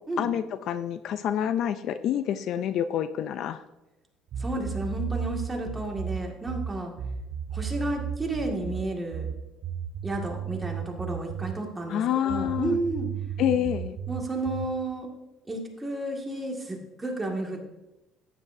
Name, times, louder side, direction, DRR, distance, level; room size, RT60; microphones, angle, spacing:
voice 1, 0.2-3.6 11.9-12.8 13.4-14.0, left 10 dB, 60° left, 12 dB, 0.4 m, -27 dB
sound 1, 4.3-11.6 12.3-14.8, right 7 dB, 50° right, 0.8 m, -34 dB
voice 2, 4.4-6.9 7.5-9.3 10.0-13.1 14.1-15.1 15.5-17.6, right 2 dB, 10° right, 0 dB, 2.0 m, -32 dB
14.0 x 9.1 x 2.7 m, 0.98 s
cardioid pair, 130°, 0 cm